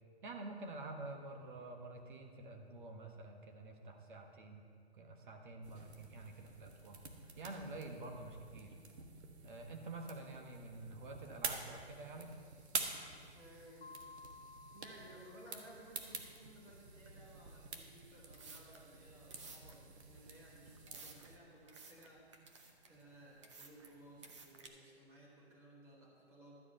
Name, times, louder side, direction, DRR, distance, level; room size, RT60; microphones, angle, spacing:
voice 1, 0.2-4.6 4.9-7.0 7.4-8.7 9.4-12.4, right 2 dB, 50° right, 4 dB, 1.5 m, -48 dB
sound 1, 5.6-21.4, right 4 dB, 80° right, 1.5 m, -48 dB
voice 2, 13.3-13.9 14.7-22.4 22.9-26.6, right 1 dB, 10° right, -4 dB, 1.3 m, -59 dB
Mallet percussion, 13.8-16.4, left 4 dB, 70° left, 0.9 m, -57 dB
sound 2, 18.1-24.7, right 4 dB, 30° right, 0.8 m, -57 dB
12.5 x 4.8 x 8.4 m, 2.1 s
hypercardioid pair, 170°, 33 cm